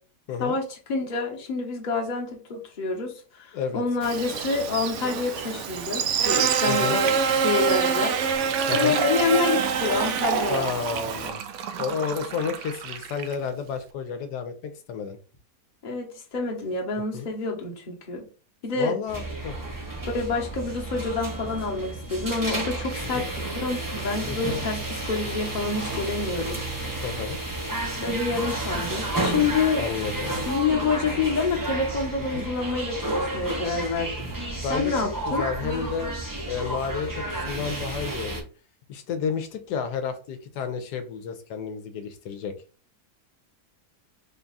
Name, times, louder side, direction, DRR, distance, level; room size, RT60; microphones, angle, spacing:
voice 1, 0.4-7.2 7.4-8.2 8.7-10.7 15.8-18.3 18.6-19.0 20.1-26.6 28.0-29.9 30.4-34.3 34.7-35.4, left 4 dB, 35° left, -1 dB, 0.9 m, -27 dB
Buzz, 4.0-11.3, right 6 dB, 75° right, 0.6 m, -26 dB
voice 2, 6.7-7.0 8.7-9.0 10.5-11.4 11.7-15.2 17.1-17.3 18.8-19.5 23.1-23.3 24.3-24.6 27.0-27.4 29.8-30.3 32.3-32.5 34.6-36.1 36.5-38.4 38.9-42.5, left 6 dB, 80° left, 8 dB, 1.2 m, -31 dB
Fill (with liquid), 8.4-13.5, right 7 dB, 90° right, 1.2 m, -32 dB
sound 1, 19.1-38.4, right 2 dB, 25° right, 0.4 m, -31 dB
3.6 x 2.3 x 3.9 m, 0.36 s
omnidirectional pair, 1.8 m